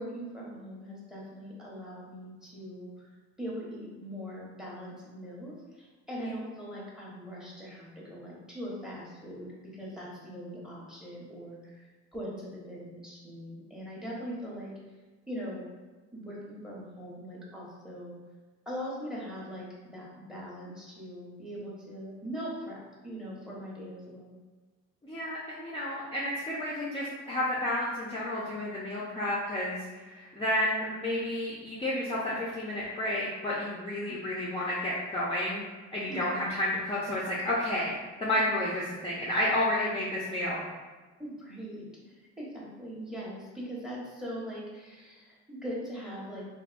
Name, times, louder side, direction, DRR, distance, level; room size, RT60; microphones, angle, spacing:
voice 1, 0.0-3.1 3.4-14.7 15.3-15.7 16.1-18.2 18.6-24.4 29.1-29.3 34.1-34.2 36.1-36.5 41.2-46.4, equal, ahead, -5 dB, 1.1 m, -41 dB
voice 2, 25.1-35.6 35.9-38.0 38.2-40.6, left 1 dB, 20° left, -7 dB, 0.6 m, -31 dB
3.4 x 2.7 x 2.5 m, 1.3 s
cardioid pair, 90°, 30 cm